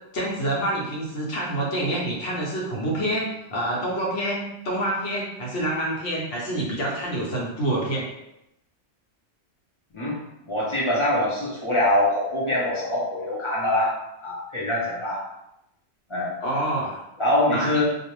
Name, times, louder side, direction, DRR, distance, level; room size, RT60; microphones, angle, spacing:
voice 1, 0.1-8.1 16.4-17.0 17.5-17.8, right 1 dB, 80° left, -3 dB, 1.0 m, -27 dB
voice 2, 10.5-13.9 14.2-15.2 16.1-16.3 17.2-17.8, left 1 dB, 40° left, -6 dB, 0.4 m, -24 dB
2.5 x 2.0 x 2.9 m, 0.86 s
omnidirectional pair, 1.2 m